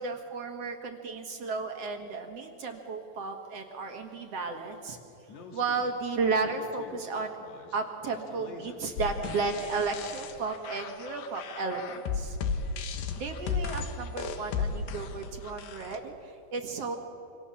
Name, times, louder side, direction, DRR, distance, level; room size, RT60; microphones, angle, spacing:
voice 1, 0.0-5.0 5.5-7.4 7.7-12.4 12.9-17.0, right 4 dB, 50° right, 4 dB, 2.1 m, -33 dB
Speech, 5.3-10.5, left 4 dB, 55° left, 3.0 m, -48 dB
sound 1, 9.0-16.0, left 5 dB, 75° left, 3.1 m, -34 dB
27.0 x 25.5 x 7.1 m, 2.9 s
omnidirectional pair, 4.4 m